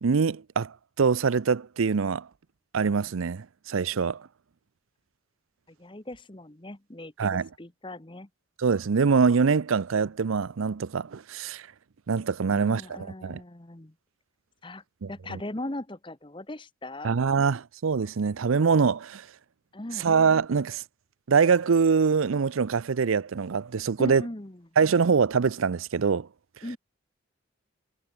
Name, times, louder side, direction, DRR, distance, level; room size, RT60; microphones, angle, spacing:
voice 1, 0.0-2.3 2.7-4.2 7.2-7.5 8.6-11.6 12.1-13.4 15.0-15.4 17.0-19.3 20.0-20.8 21.3-24.2 24.8-26.3, right 5 dB, 90° right, 0.5 m, -24 dB
voice 2, 5.7-8.3 12.5-13.9 14.6-14.8 15.1-17.1 19.7-20.1 24.0-24.7 26.6-26.8, left 1 dB, 25° left, 1.1 m, -39 dB
head